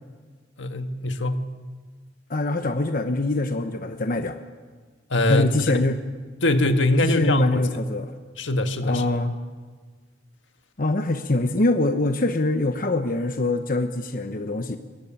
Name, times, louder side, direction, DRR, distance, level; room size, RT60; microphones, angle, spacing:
voice 1, 0.6-1.5 5.1-5.5 6.4-7.6 8.4-9.1, left 1 dB, 75° left, 7 dB, 1.8 m, -22 dB
voice 2, 2.3-4.4 5.3-6.0 7.0-8.1 8.8-9.4 10.8-14.8, left 2 dB, 45° left, 7 dB, 1.1 m, -24 dB
24.5 x 21.5 x 8.9 m, 1.5 s
head